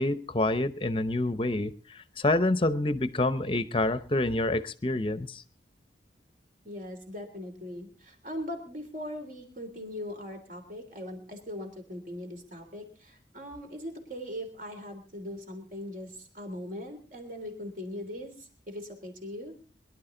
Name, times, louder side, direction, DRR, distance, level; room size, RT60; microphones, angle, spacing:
voice 1, 0.0-5.4, left 2 dB, 30° left, 13 dB, 0.8 m, -27 dB
voice 2, 6.6-19.5, left 1 dB, 45° right, 5 dB, 3.3 m, -40 dB
22.5 x 12.0 x 3.9 m, 0.37 s
head